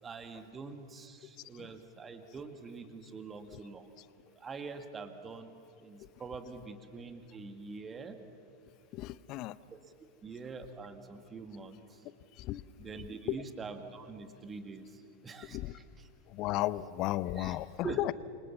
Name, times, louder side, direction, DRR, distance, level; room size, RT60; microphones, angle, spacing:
voice 1, 0.0-3.9 4.4-5.5 5.8-8.2 9.7-9.8 10.2-12.0 12.8-16.1 17.4-17.6 17.8-18.1, right 4 dB, 20° right, 8 dB, 1.9 m, -44 dB
voice 2, 8.9-9.6 12.4-12.6 13.3-13.4 15.5-15.7 16.3-18.1, left 16 dB, 40° left, 19 dB, 0.7 m, -34 dB
28.5 x 25.0 x 7.3 m, 2.5 s
figure-of-eight pair, 90°, 0 cm